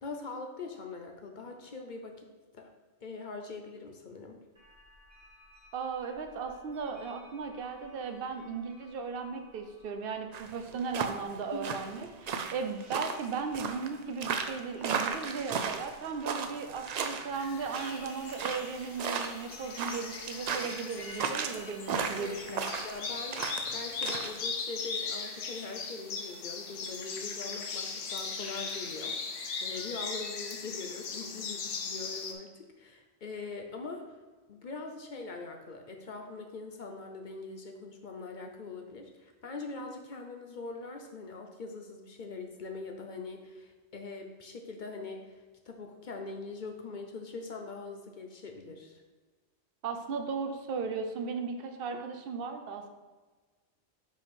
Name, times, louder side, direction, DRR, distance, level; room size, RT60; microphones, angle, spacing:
voice 1, 0.0-2.3 2.5-2.7 3.0-4.4 11.5-11.9 22.0-29.2 29.6-34.2 34.5-49.0, left 3 dB, 50° left, 3 dB, 0.7 m, -42 dB
sound 1, 4.6-23.1, left 1 dB, 35° right, 1.6 m, -58 dB
voice 2, 5.7-22.7 49.8-52.9, right 5 dB, 55° right, 6 dB, 0.8 m, -36 dB
sound 2, 10.3-24.4, right 6 dB, 80° right, 0.3 m, -35 dB
sound 3, 17.3-32.3, left 5 dB, 75° left, 1.1 m, -39 dB
5.8 x 4.4 x 4.5 m, 1.3 s
omnidirectional pair, 1.2 m